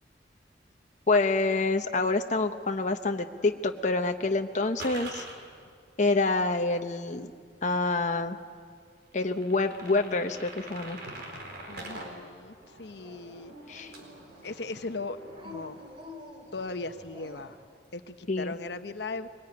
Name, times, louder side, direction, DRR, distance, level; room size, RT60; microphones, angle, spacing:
voice 1, 1.1-5.3 6.0-7.3 7.6-8.4 9.1-11.0 13.7-13.9 18.3-18.5, left 3 dB, 45° left, 5 dB, 0.9 m, -27 dB
sound 1, 3.4-5.4 7.0-7.1 7.5-7.6 8.2-8.3 8.6-8.7 9.1-12.1 12.4-16.2 16.5-17.6, right 2 dB, 60° right, 4.5 m, -46 dB
voice 2, 11.7-13.5 14.4-15.2 15.4-15.8 16.5-17.6 17.9-19.3, left 3 dB, 70° left, 9 dB, 1.0 m, -38 dB
Dog, 13.0-14.5 15.3-17.7, left 2 dB, 30° right, 2.7 m, -48 dB
22.5 x 20.0 x 9.7 m, 2.1 s
head